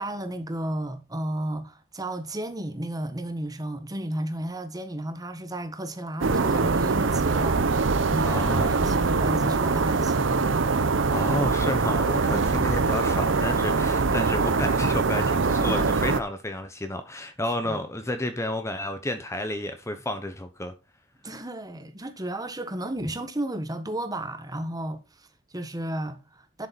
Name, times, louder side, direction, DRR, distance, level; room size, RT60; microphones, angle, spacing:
voice 1, 0.0-10.6 12.4-12.7 17.4-17.8 21.2-26.7, right 1 dB, 20° right, 1.4 m, -33 dB
sound 1, 6.2-16.2, right 4 dB, 80° right, 0.7 m, -23 dB
voice 2, 8.2-8.8 11.1-20.7, left 1 dB, 15° left, 1.0 m, -31 dB
11.0 x 7.1 x 4.1 m
head